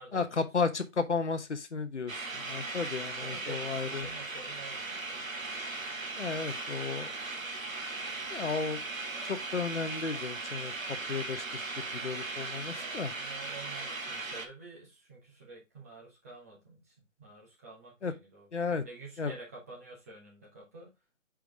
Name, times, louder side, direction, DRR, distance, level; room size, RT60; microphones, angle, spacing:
voice 1, 0.1-2.1 2.5-4.1 6.2-7.1 8.3-8.8 9.3-10.7 11.1-11.4 11.9-13.1 18.0-18.1 18.5-18.8 19.2-19.3, left 4 dB, 60° left, 1.0 m, -33 dB
sound 1, 2.1-14.5, right 3 dB, 90° right, 1.5 m, -38 dB
voice 2, 3.2-5.3 12.7-20.9, right 3 dB, 10° right, 1.2 m, -49 dB
6.3 x 5.0 x 3.4 m
figure-of-eight pair, 160°, 39 cm